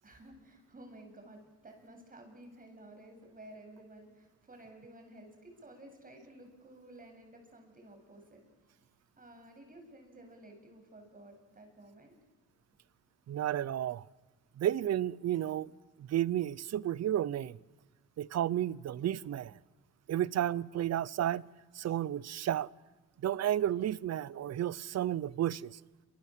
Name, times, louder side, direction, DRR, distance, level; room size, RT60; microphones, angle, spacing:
voice 1, 0.0-8.8 9.2-12.1, right 1 dB, 30° right, 7.8 m, -53 dB
voice 2, 13.3-14.0 14.6-15.7 16.0-17.6 18.2-19.5 20.1-21.4 21.7-22.7 23.2-25.8, right 11 dB, 60° right, 0.8 m, -32 dB
28.0 x 26.0 x 7.6 m
cardioid pair, 90°, 30 cm